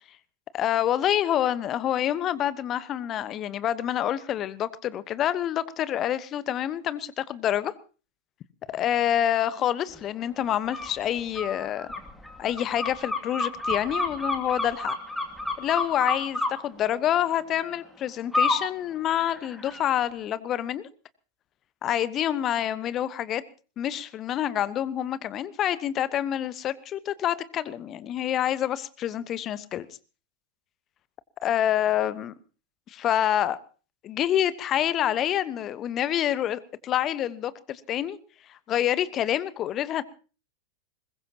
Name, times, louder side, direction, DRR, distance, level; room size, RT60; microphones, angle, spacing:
voice 1, 0.5-7.7 8.7-11.9 12.4-15.0 15.6-20.9 21.8-23.4 23.8-29.9 31.4-32.3 32.9-33.6 34.0-38.2 38.5-40.0, left 11 dB, 30° left, 1.1 m, -27 dB
sound 1, 10.7-10.9 11.4-16.5 18.3-18.6 19.1-19.9, left 2 dB, 5° left, 2.5 m, -29 dB
22.0 x 20.5 x 2.9 m
figure-of-eight pair, 90°, 0 cm